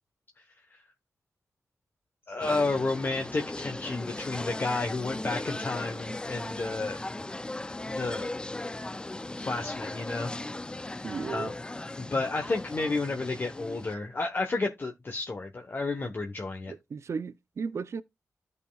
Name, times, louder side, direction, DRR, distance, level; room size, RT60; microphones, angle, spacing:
voice 1, 2.3-7.0 7.8-8.3 9.4-10.3 11.3-11.5 12.0-16.7, left 3 dB, 40° left, 1.0 m, -31 dB
sound 1, 2.4-14.0, left 2 dB, 15° left, 0.4 m, -38 dB
voice 2, 11.0-11.5 16.7-18.0, right 5 dB, 60° right, 0.6 m, -35 dB
14.0 x 5.4 x 2.3 m
cardioid pair, 70°, 5 cm